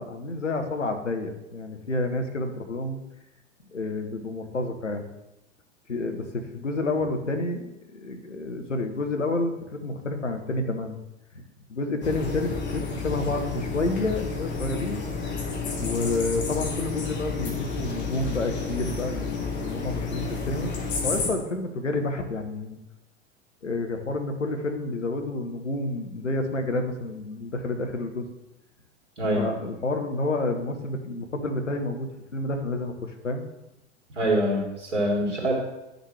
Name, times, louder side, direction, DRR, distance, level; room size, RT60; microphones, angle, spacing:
voice 1, 0.0-3.0 3.7-5.0 5.9-11.0 11.7-15.0 15.8-20.7 21.0-22.8 23.6-28.3 29.4-33.4, left 2 dB, 80° left, 6 dB, 1.1 m, -29 dB
sound 1, 12.0-21.3, left 4 dB, 30° left, 1.9 m, -31 dB
voice 2, 34.2-35.5, right 1 dB, 75° right, -2 dB, 2.7 m, -24 dB
11.0 x 6.5 x 3.3 m, 0.93 s
figure-of-eight pair, 90°, 36 cm